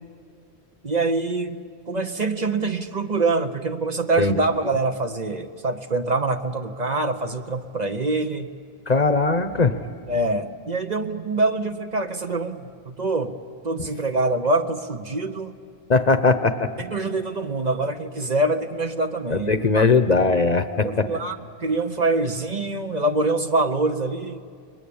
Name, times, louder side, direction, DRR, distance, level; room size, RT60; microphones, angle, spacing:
voice 1, 0.8-1.6 1.9-8.5 10.1-13.3 13.6-15.5 16.8-19.9 20.8-24.4, right 2 dB, 40° right, 6 dB, 1.1 m, -25 dB
voice 2, 8.9-9.8 15.9-16.7 19.3-21.1, left 3 dB, 40° left, 10 dB, 1.0 m, -19 dB
30.0 x 21.5 x 8.7 m, 2.2 s
omnidirectional pair, 1.1 m